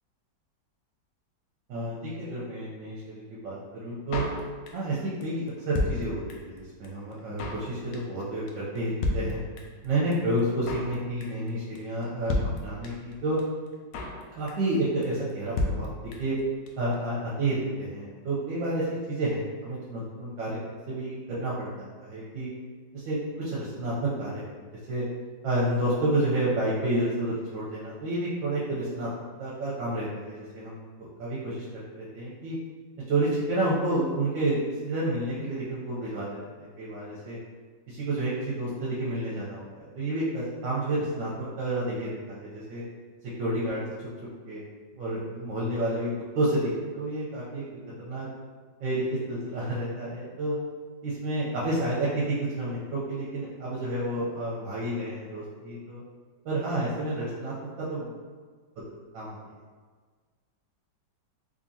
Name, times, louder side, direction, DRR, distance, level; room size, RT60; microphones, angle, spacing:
voice 1, 1.7-4.2 4.7-9.4 9.8-13.4 14.4-15.9 16.2-16.3 16.8-20.6 20.9-22.5 22.9-24.6 24.9-25.0 25.4-29.1 29.4-32.6 33.1-34.6 34.8-37.4 37.9-42.8 43.4-43.8 44.5-44.6 45.0-46.1 46.3-47.6 48.0-48.3 48.8-50.6 51.0-56.0 56.4-58.1 59.1-59.3, right 1 dB, 80° right, -7 dB, 1.4 m, -30 dB
Drum kit, 4.1-4.9 5.2-5.3 5.5-6.6 6.8-6.9 7.1-7.7 7.9-8.2 8.5-8.6 8.7-8.8 9.0-9.8 10.1-10.2 10.4-10.9 11.2-11.5 11.7-11.8 12.0-12.1 12.3-13.1 13.4-13.5 13.7-14.2 14.5-14.8 15.0-15.1 15.3-15.4 15.6-16.4 16.7-16.8 16.9-17.0, left 2 dB, 70° left, 0.9 m, -31 dB
3.7 x 3.2 x 2.7 m, 1.5 s
omnidirectional pair, 2.0 m